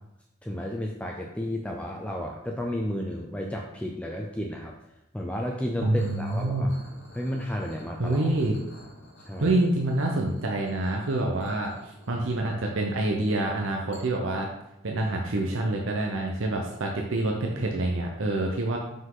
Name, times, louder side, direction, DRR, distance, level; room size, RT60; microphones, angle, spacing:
voice 1, 0.4-4.7 5.1-6.7 7.1-8.3 9.2-9.6, left 1 dB, 5° left, 0 dB, 0.4 m, -32 dB
voice 2, 5.8-6.7 8.0-8.6 9.4-14.5 14.8-18.8, right 2 dB, 75° right, 0 dB, 0.7 m, -27 dB
sound 1, 5.9-13.0 13.9-14.0, left 1 dB, 75° left, 1.8 m, -51 dB
5.8 x 5.2 x 3.8 m, 0.88 s
head